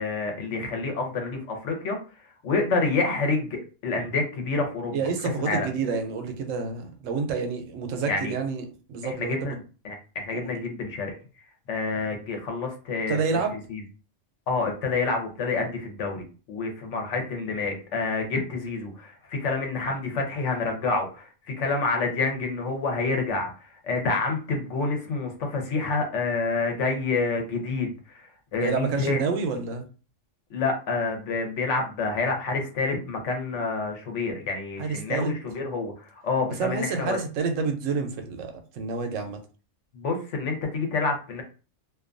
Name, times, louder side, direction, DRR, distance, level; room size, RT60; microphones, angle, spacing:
voice 1, 0.0-2.0 2.4-5.0 5.4-5.7 8.1-8.3 9.0-9.6 9.8-11.1 11.7-13.2 13.7-13.8 14.5-29.2 30.5-37.2 39.9-41.4, left 3 dB, 70° left, 3 dB, 1.0 m, -28 dB
voice 2, 4.9-9.5 10.3-10.5 13.1-13.5 28.6-29.9 34.8-35.3 36.6-39.4, right 5 dB, 90° right, 5 dB, 1.0 m, -29 dB
2.5 x 2.3 x 2.5 m, 0.35 s
omnidirectional pair, 1.3 m